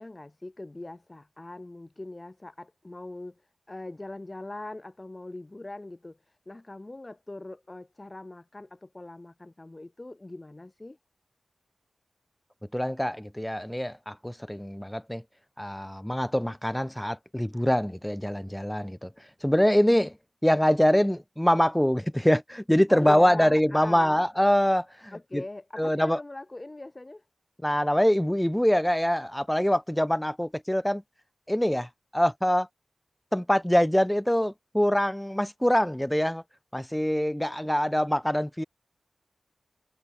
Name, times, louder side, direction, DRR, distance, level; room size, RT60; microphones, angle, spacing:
voice 1, 0.0-3.3 3.7-6.2 6.5-11.0 22.9-24.2 25.1-27.2, left 2 dB, 30° left, 6.7 m, -41 dB
voice 2, 12.7-15.2 15.6-19.1 19.4-20.1 20.4-25.4 25.8-26.2 27.6-31.0 31.5-32.7 33.3-36.4 36.7-38.6, equal, 5° left, 0.6 m, -24 dB
cardioid pair, 50°, 0 cm